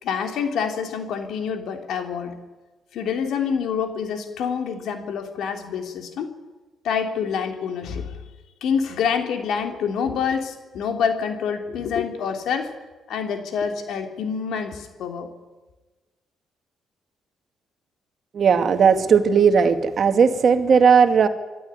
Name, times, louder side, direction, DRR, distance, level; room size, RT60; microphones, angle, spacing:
voice 1, 0.0-2.4 2.9-6.3 6.8-8.1 8.6-12.7 13.1-15.3, left 6 dB, 75° left, 5 dB, 3.0 m, -26 dB
voice 2, 18.4-21.3, right 6 dB, 55° right, 9 dB, 1.8 m, -16 dB
25.0 x 11.5 x 9.8 m, 1.2 s
cardioid pair, 90°, 0 cm